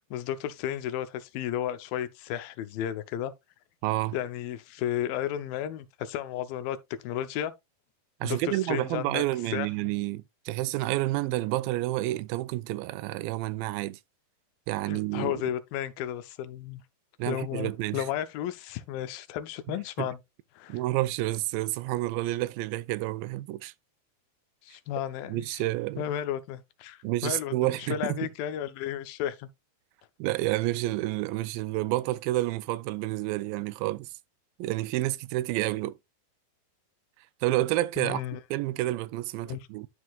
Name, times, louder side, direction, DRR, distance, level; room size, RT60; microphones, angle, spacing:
voice 1, 0.1-3.3 4.1-6.8 7.0-7.5 8.2-9.2 9.5-9.7 14.9-16.8 17.3-20.2 20.6-20.8 24.6-25.5 26.0-29.5 38.0-38.4 39.4-39.7, left 11 dB, 85° left, 2.5 m, -33 dB
voice 2, 3.8-4.2 8.2-14.0 14.7-15.4 17.2-18.1 19.7-20.1 20.7-23.7 25.3-26.1 27.0-28.2 30.2-34.1 34.6-35.9 37.4-38.2 38.5-39.9, right 17 dB, 85° right, 2.3 m, -29 dB
11.5 x 4.6 x 2.3 m
omnidirectional pair, 4.1 m